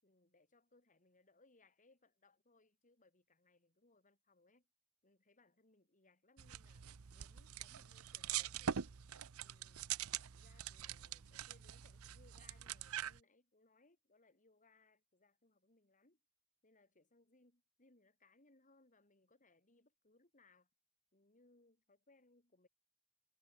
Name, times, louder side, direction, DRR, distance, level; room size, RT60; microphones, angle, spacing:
voice 1, 0.0-4.7 5.0-6.9 7.1-9.0 9.4-9.9 10.3-16.2 16.6-20.7 21.1-22.7, left 2 dB, 35° left, 4.2 m, -71 dB
sound 1, 6.4-13.2, right 9 dB, 75° right, 0.7 m, -44 dB
head